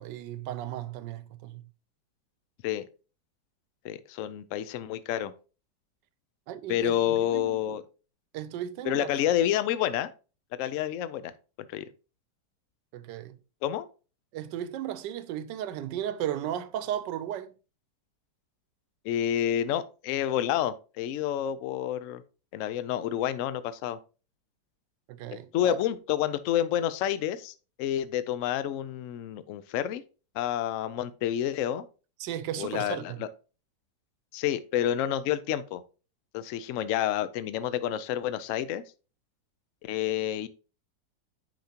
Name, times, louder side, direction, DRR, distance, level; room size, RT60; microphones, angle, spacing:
voice 1, 0.0-1.6 6.5-7.8 8.3-9.1 12.9-13.4 14.3-17.5 25.1-25.8 32.2-33.2, right 11 dB, 80° right, 1.3 m, -35 dB
voice 2, 3.8-5.3 6.7-7.8 8.8-10.1 10.6-11.3 11.7-11.8 13.6-13.9 19.0-22.2 22.5-24.0 25.3-30.0 30.3-31.8 32.6-33.3 34.3-35.8 36.3-38.8 39.8-40.5, left 11 dB, 80° left, 0.7 m, -29 dB
9.1 x 5.0 x 2.8 m
omnidirectional pair, 1.9 m